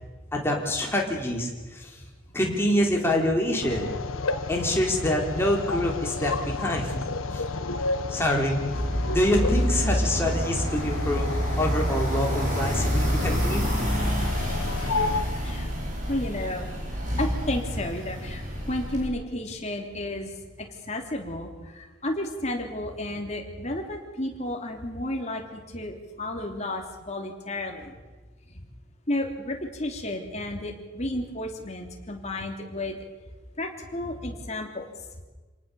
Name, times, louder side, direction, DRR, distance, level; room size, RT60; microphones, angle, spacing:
voice 1, 0.3-2.0 2.3-3.9 4.5-6.9 7.3-7.4 8.1-8.5 9.1-11.3 11.6-13.6, left 1 dB, 10° left, -1 dB, 3.9 m, -26 dB
sound 1, 3.6-15.2, left 3 dB, 85° left, 1.4 m, -32 dB
sound 2, 8.7-19.1, equal, 40° right, 7.1 m, -28 dB
voice 2, 16.0-16.7 17.2-18.4 18.7-20.3 20.6-27.9 29.1-33.0 33.6-34.9, left 1 dB, 35° left, 2 dB, 3.2 m, -32 dB
27.5 x 19.0 x 7.1 m, 1.2 s
head